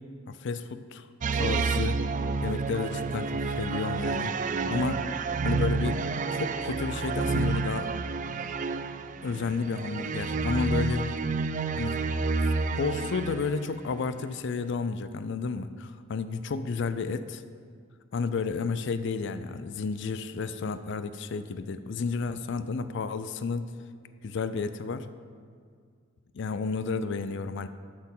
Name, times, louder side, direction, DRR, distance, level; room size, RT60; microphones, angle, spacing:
voice 1, 0.3-1.1 1.3-2.0 2.4-4.3 4.7-5.0 5.4-6.0 6.3-7.9 9.2-11.1 11.8-12.0 12.4-17.4 18.1-23.7 24.2-25.1 26.3-27.7, left 4 dB, 60° left, 12 dB, 0.4 m, -31 dB
sound 1, 1.2-13.7, right 4 dB, 40° right, 0.4 m, -29 dB
12.0 x 4.4 x 7.3 m, 2.1 s
head